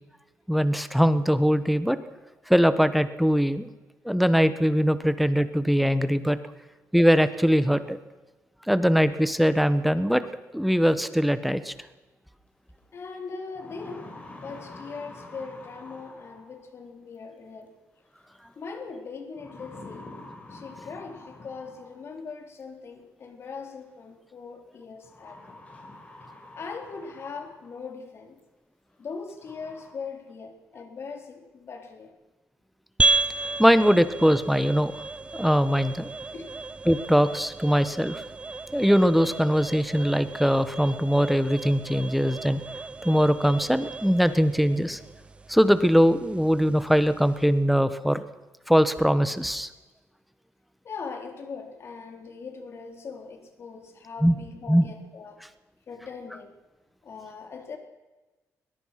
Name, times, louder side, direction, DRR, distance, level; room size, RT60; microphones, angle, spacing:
voice 1, 0.5-2.0 2.5-3.7 4.0-6.4 6.9-8.0 8.7-10.3 10.5-11.7 33.6-34.9 35.3-36.1 36.9-38.2 38.7-42.6 43.0-45.0 45.5-48.2 48.7-49.7 54.2-54.3 54.7-54.9, equal, ahead, 12 dB, 1.2 m, -21 dB
sound 1, 12.8-12.9 13.3-16.7 18.2-18.6 19.4-22.2 23.4-23.5 25.0-27.9 28.4-28.5 29.0-29.1 29.4-29.9, left 2 dB, 25° left, 4.6 m, -46 dB
voice 2, 12.9-17.7 18.6-20.1 20.5-25.6 26.6-28.4 29.0-32.1 36.3-36.6 50.8-55.4 55.9-56.5 57.0-57.8, left 5 dB, 45° left, 4 dB, 3.7 m, -40 dB
sound 2, 33.0-47.6, right 3 dB, 20° right, 0.6 m, -33 dB
22.0 x 21.0 x 5.9 m, 1.2 s
cardioid pair, 140°, 6 cm